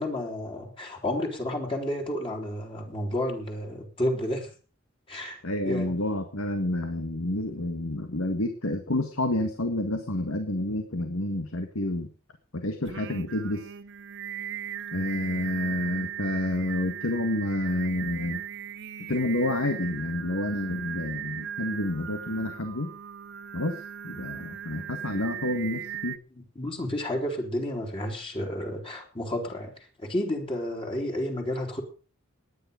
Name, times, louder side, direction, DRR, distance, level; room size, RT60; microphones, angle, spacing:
voice 1, 0.0-4.5 5.1-5.4 5.6-5.9 26.3-29.7 30.0-31.8, left 1 dB, 25° left, 1 dB, 3.3 m, -31 dB
voice 2, 5.4-12.1 12.5-13.7 14.9-18.4 19.1-22.9 23.5-26.2, left 1 dB, 80° left, 6 dB, 1.9 m, -29 dB
Singing, 12.8-26.2, right 9 dB, 60° right, 0.8 m, -38 dB
18.5 x 10.0 x 5.2 m, 0.37 s
head